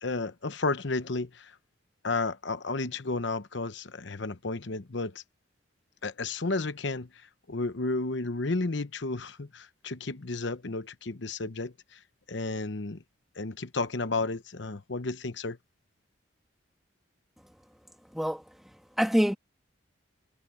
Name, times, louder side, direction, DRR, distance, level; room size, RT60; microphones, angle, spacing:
voice 1, 0.0-1.5 2.0-5.2 6.0-7.1 7.5-12.0 12.3-13.0 13.4-15.6, left 3 dB, 65° left, 0.9 m, -32 dB
voice 2, 18.1-19.4, equal, ahead, 1.6 m, -27 dB
head